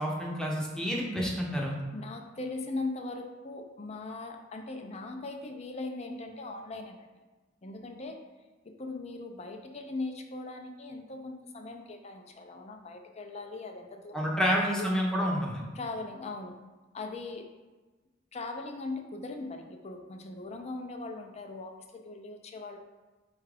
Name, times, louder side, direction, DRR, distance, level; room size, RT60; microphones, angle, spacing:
voice 1, 0.0-1.7 14.1-15.6, equal, 5° left, -3 dB, 0.7 m, -29 dB
voice 2, 1.9-7.1 7.6-8.2 8.7-14.4 14.7-14.9 15.7-16.6 16.9-17.5 18.3-22.8, left 3 dB, 35° left, 4 dB, 0.5 m, -39 dB
4.5 x 2.4 x 4.8 m, 1.2 s
head